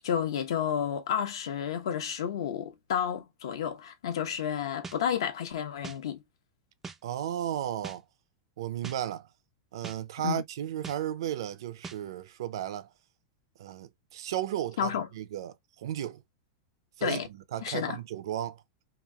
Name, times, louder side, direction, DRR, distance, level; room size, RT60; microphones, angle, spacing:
voice 1, 0.0-6.2 10.2-10.4 14.8-15.1 17.0-17.3 17.6-18.0, left 8 dB, 80° left, 0.9 m, -31 dB
sound 1, 4.8-5.0 5.8-6.0 6.8-7.0 7.8-8.0 8.8-9.0 9.8-10.0 10.8-11.0 11.8-12.0, right 5 dB, 10° right, 0.3 m, -41 dB
voice 2, 7.0-8.0 8.6-9.3 9.7-12.9 13.6-16.2 17.0-18.6, right 11 dB, 70° right, 0.5 m, -34 dB
3.0 x 2.7 x 2.2 m
supercardioid pair, 165°, 3 cm